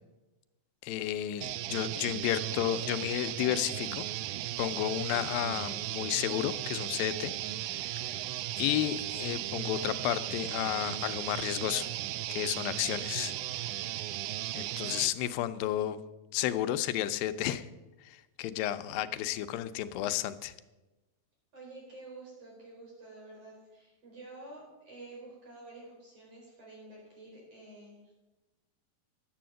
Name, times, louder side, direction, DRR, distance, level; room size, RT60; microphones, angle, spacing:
voice 1, 0.8-4.1 4.6-7.3 7.6-8.0 8.6-11.9 12.3-13.9 14.5-16.0 16.3-17.7 18.0-20.5, left 12 dB, 90° left, 11 dB, 2.4 m, -32 dB
sound 1, 1.4-15.1, right 14 dB, 85° right, 1.7 m, -36 dB
voice 2, 21.5-28.0, right 2 dB, 45° right, -3 dB, 5.5 m, -49 dB
12.0 x 7.8 x 7.5 m, 1.1 s
omnidirectional pair, 4.0 m